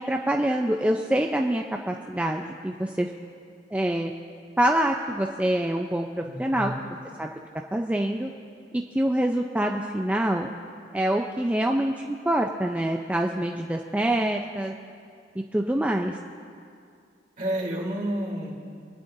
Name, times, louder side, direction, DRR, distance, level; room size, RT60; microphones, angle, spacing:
voice 1, 0.0-3.1 3.7-4.1 4.6-6.7 7.2-7.3 7.7-8.3 8.7-10.5 10.9-14.7 15.5-16.2, right 1 dB, 10° right, 2 dB, 0.4 m, -25 dB
voice 2, 6.2-6.8 17.4-18.5, right 1 dB, 50° right, -4 dB, 2.9 m, -30 dB
26.5 x 9.8 x 2.6 m, 2.3 s
head